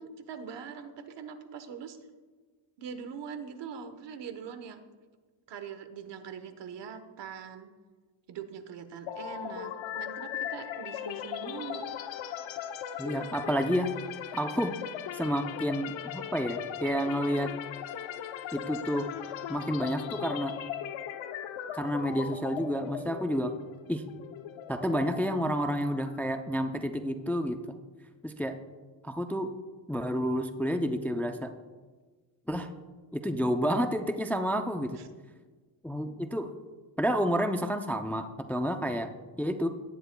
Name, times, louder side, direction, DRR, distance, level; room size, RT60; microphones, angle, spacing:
voice 1, 0.0-2.0 2.8-4.8 5.5-7.7 8.3-11.9 35.0-35.1, right 6 dB, 65° right, 10 dB, 1.1 m, -42 dB
sound 1, 9.1-26.8, left 10 dB, 75° left, 0.8 m, -39 dB
voice 2, 13.0-13.9 14.3-14.7 15.1-17.5 18.5-19.1 19.5-20.5 21.7-23.5 23.9-24.0 24.7-27.8 28.2-28.6 29.0-29.5 29.9-31.5 32.5-32.7 33.1-34.9 35.8-36.5 37.0-39.1 39.4-39.7, equal, 5° left, 7 dB, 0.4 m, -30 dB
17.5 x 10.0 x 2.3 m, 1.4 s
cardioid pair, 115°, 46 cm